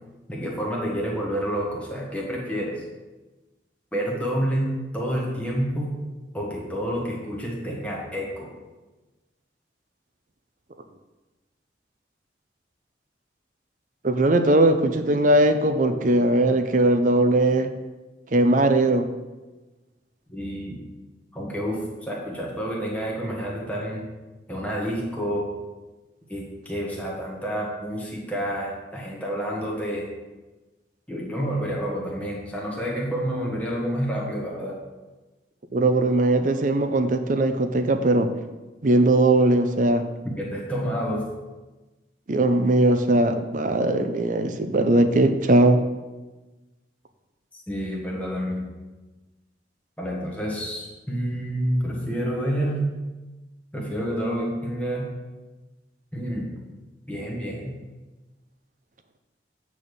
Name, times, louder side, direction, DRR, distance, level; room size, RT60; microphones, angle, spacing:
voice 1, 0.3-2.8 3.9-5.9 6.3-8.5 20.3-20.8 21.3-24.0 24.5-25.5 26.3-30.1 31.1-34.8 40.4-41.2 47.7-48.7 50.0-52.9 53.7-55.1 56.1-56.5 57.1-57.7, equal, 10° left, -3 dB, 1.4 m, -29 dB
voice 2, 14.0-17.7 18.3-19.1 35.7-38.3 38.8-40.0 42.3-45.8, right 1 dB, 45° right, 8 dB, 0.5 m, -19 dB
8.6 x 3.5 x 6.2 m, 1.2 s
head